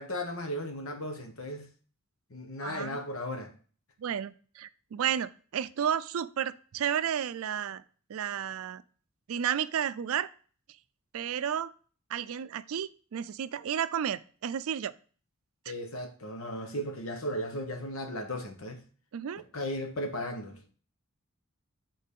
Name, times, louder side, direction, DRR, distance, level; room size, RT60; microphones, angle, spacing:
voice 1, 0.0-1.7 2.3-3.5 15.7-18.8 19.5-20.6, equal, 70° left, 1.1 m, -36 dB
voice 2, 2.6-3.0 4.0-7.8 8.1-8.8 9.3-10.3 11.1-11.7 12.1-14.9 19.1-19.4, right 9 dB, 70° right, 0.4 m, -32 dB
6.6 x 4.0 x 5.3 m
head